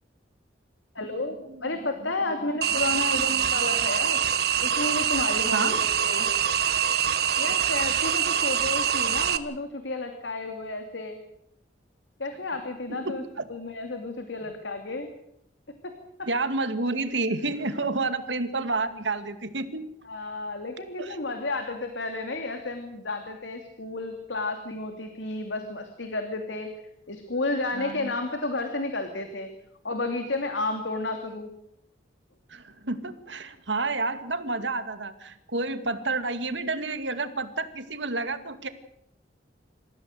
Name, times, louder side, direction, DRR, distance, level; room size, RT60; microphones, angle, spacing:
voice 1, 0.9-4.2 4.6-6.3 7.4-11.2 12.2-13.2 13.5-15.1 15.8-15.9 16.2-16.3 17.8-17.9 20.0-26.7 27.1-29.5 29.8-31.5, left 2 dB, 90° left, 6 dB, 2.8 m, -32 dB
sound 1, 2.6-9.4, right 9 dB, 60° right, 1.4 m, -24 dB
voice 2, 12.9-13.4 14.4-14.5 16.2-19.9 21.0-21.2 27.7-28.1 32.5-38.7, right 3 dB, 90° right, 9 dB, 2.3 m, -30 dB
27.0 x 15.5 x 8.0 m, 0.78 s
head